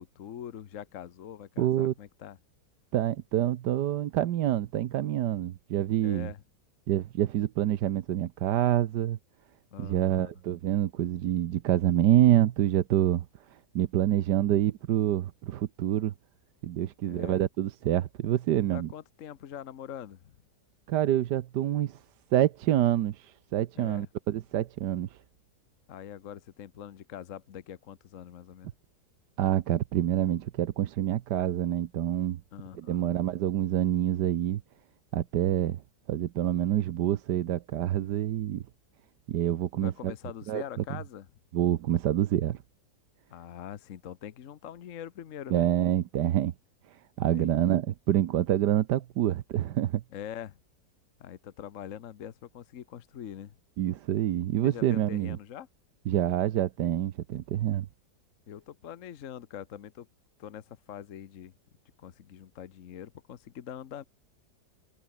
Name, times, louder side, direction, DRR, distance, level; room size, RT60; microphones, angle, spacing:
voice 1, 0.0-2.4 6.0-6.4 9.7-10.3 17.0-17.4 18.7-20.3 23.8-24.1 25.9-28.7 32.5-33.1 39.7-41.3 43.3-45.7 47.3-47.6 50.1-50.6 51.2-53.6 54.6-55.7 58.5-60.1 60.4-61.5 62.0-64.0, left 9 dB, 55° left, 1.2 m, -43 dB
voice 2, 1.6-1.9 2.9-6.3 6.9-9.2 9.8-13.2 13.7-16.1 16.6-18.9 20.9-22.0 22.3-25.1 29.4-32.4 32.8-34.6 35.1-35.8 36.1-38.6 39.3-40.1 40.5-40.6 41.5-42.6 45.5-46.5 47.2-50.0 53.8-55.4 56.1-57.9, right 12 dB, 75° right, 1.4 m, -27 dB
omnidirectional pair, 1.8 m